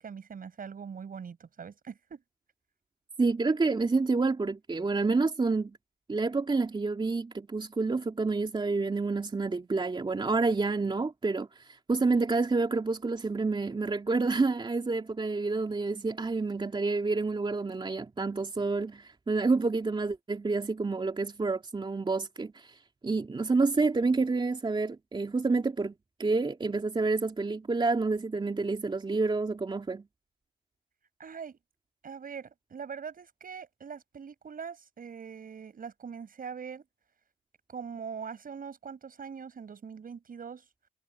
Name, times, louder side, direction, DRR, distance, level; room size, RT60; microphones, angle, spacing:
voice 1, 0.0-2.2 31.2-31.6 32.0-36.8 37.7-40.6, right 6 dB, 45° right, 5.7 m, -42 dB
voice 2, 3.2-5.8 6.1-25.9 26.2-30.0, right 3 dB, 25° right, 3.1 m, -28 dB
cardioid pair, 90°, 20 cm